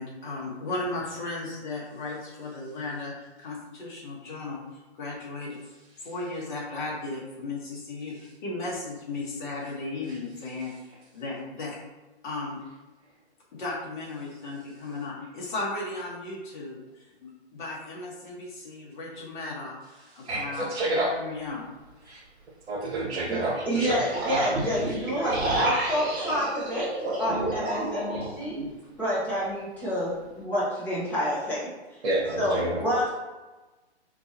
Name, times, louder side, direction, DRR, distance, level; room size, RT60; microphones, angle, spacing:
voice 1, 0.0-5.6 6.0-10.7 11.1-11.8 12.2-12.6 13.5-21.6, left 2 dB, 45° left, -3 dB, 1.4 m, -36 dB
sound 1, 20.3-20.4 23.2-28.7, right 2 dB, 25° right, 1.4 m, -31 dB
voice 2, 20.3-21.1 22.1-22.2 22.7-24.0 32.0-32.8, right 2 dB, 75° right, -5 dB, 1.1 m, -28 dB
voice 3, 23.3-28.6 29.0-32.0 32.4-33.1, equal, 5° left, -10 dB, 1.1 m, -28 dB
4.4 x 3.1 x 2.9 m, 1.2 s
hypercardioid pair, 155°, 34 cm